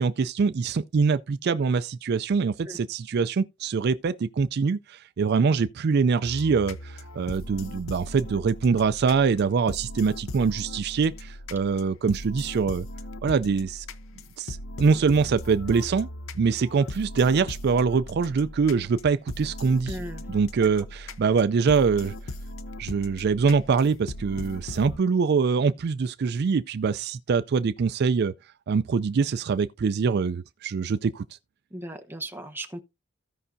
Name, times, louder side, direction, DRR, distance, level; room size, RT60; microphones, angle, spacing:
voice 1, 0.0-12.9 13.2-13.9 14.4-16.1 16.4-20.0 20.3-22.1 22.8-28.3 28.7-31.2, right 5 dB, 55° right, 0.4 m, -24 dB
sound 1, 6.2-25.0, left 1 dB, 75° left, 0.7 m, -39 dB
voice 2, 19.9-20.2 20.8-20.9 31.7-32.8, right 1 dB, 10° right, 0.8 m, -37 dB
16.0 x 5.5 x 2.6 m
head